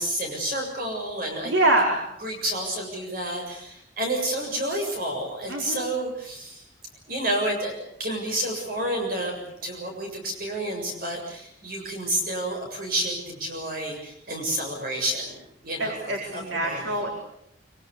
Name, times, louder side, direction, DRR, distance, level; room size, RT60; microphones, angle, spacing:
voice 1, 0.0-1.5 2.2-6.6 7.1-17.1, right 1 dB, 50° right, 2 dB, 7.2 m, -30 dB
voice 2, 1.4-2.0 5.5-5.8 15.8-17.1, right 2 dB, 80° right, 1 dB, 4.6 m, -24 dB
25.5 x 25.0 x 6.9 m, 0.75 s
head